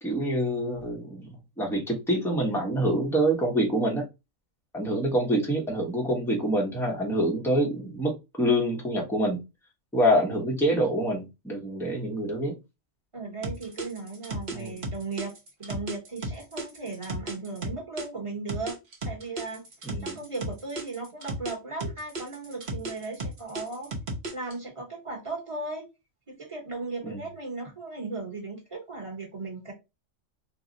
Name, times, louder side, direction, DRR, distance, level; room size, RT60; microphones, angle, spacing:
voice 1, 0.0-4.1 4.7-9.4 9.9-12.6 14.5-14.8 19.8-20.1 27.0-27.2, equal, ahead, 0.7 m, -26 dB
voice 2, 13.1-15.3 15.6-18.8 19.0-19.6 20.0-23.9 24.3-25.9 26.3-29.7, right 3 dB, 25° right, 1.1 m, -36 dB
sound 1, 13.4-18.1 18.5-21.5 21.8-24.5, right 2 dB, 45° right, 0.9 m, -34 dB
2.7 x 2.2 x 3.8 m
omnidirectional pair, 1.4 m